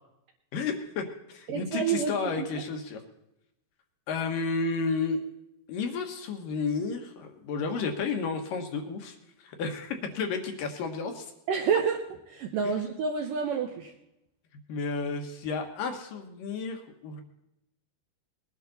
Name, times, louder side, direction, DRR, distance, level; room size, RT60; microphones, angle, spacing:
voice 1, 0.5-1.0 1.3-3.0 4.1-5.2 5.7-11.3 12.6-12.8 14.7-17.2, left 4 dB, 65° left, 5 dB, 2.6 m, -32 dB
voice 2, 1.5-2.1 2.4-2.6 11.5-12.0 12.3-13.9, right 6 dB, 70° right, 3 dB, 2.1 m, -28 dB
20.5 x 10.5 x 4.1 m, 0.85 s
omnidirectional pair, 4.8 m